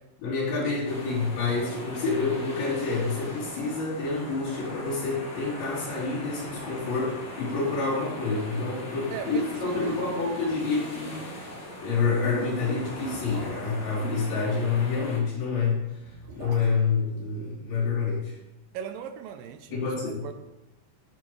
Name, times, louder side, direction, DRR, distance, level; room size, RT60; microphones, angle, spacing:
voice 1, 0.2-11.5 11.8-15.8 16.3-18.4 19.7-20.3, left 4 dB, 90° left, -7 dB, 5.7 m, -28 dB
sound 1, 0.8-15.2, left 1 dB, 35° left, 2.4 m, -40 dB
sound 2, 6.4-7.0 7.3-7.4 7.8-8.0 8.7-8.8 9.4-10.4 11.9-14.6 15.8-18.1 18.3-18.4, right 1 dB, 35° right, 3.8 m, -46 dB
voice 2, 9.1-9.9 18.7-20.3, right 9 dB, 80° right, 8 dB, 2.3 m, -39 dB
15.5 x 7.3 x 3.3 m, 0.98 s
omnidirectional pair, 4.3 m